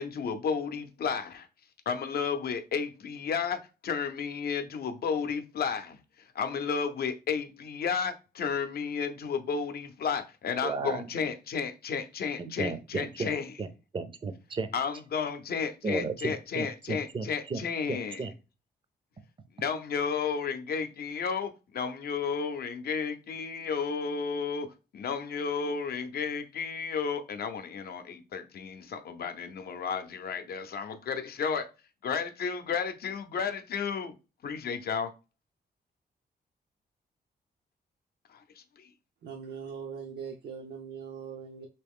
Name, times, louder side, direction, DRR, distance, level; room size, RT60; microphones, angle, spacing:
voice 1, 0.0-1.5 1.9-6.0 6.3-13.5 14.7-18.2 19.6-31.7 32.0-34.1 34.4-35.1 38.3-38.4 38.8-38.9, left 6 dB, 65° left, 0.6 m, -32 dB
voice 2, 10.6-11.1 12.4-14.7 15.8-17.6 17.9-18.3, right 4 dB, 30° right, 0.5 m, -34 dB
voice 3, 39.2-41.7, right 6 dB, 80° right, 0.6 m, -41 dB
3.1 x 2.9 x 3.5 m
cardioid pair, 105°, 17 cm